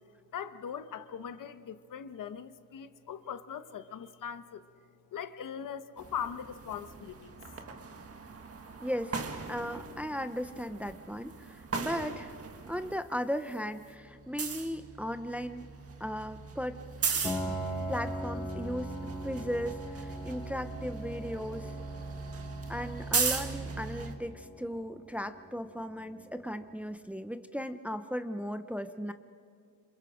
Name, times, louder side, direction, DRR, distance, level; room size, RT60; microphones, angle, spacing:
voice 1, 0.3-4.6 5.1-7.4, left 8 dB, 70° left, 11 dB, 1.2 m, -40 dB
sound 1, 6.0-13.0 13.3-24.1, right 5 dB, 45° right, 1.8 m, -38 dB
voice 2, 8.8-9.1 9.5-12.3 12.7-15.7 16.0-16.8 17.9-18.9 19.2-21.7 22.7-29.1, equal, 5° right, 9 dB, 0.6 m, -36 dB
Piano, 17.2-26.8, equal, 10° left, 4.9 m, -41 dB
28.5 x 27.5 x 5.1 m, 2.4 s
wide cardioid pair, 170°, 34 cm